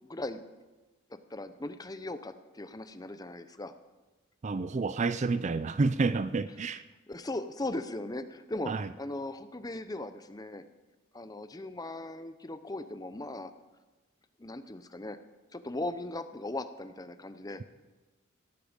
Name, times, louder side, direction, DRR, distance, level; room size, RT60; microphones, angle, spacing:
voice 1, 0.1-0.4 1.1-3.7 7.1-10.6 11.1-13.5 14.4-15.2 15.5-17.6, left 2 dB, 20° left, 11 dB, 0.7 m, -38 dB
voice 2, 4.4-6.8 8.7-8.9, right 3 dB, 35° right, 14 dB, 0.4 m, -29 dB
17.5 x 14.0 x 5.2 m, 1.2 s
head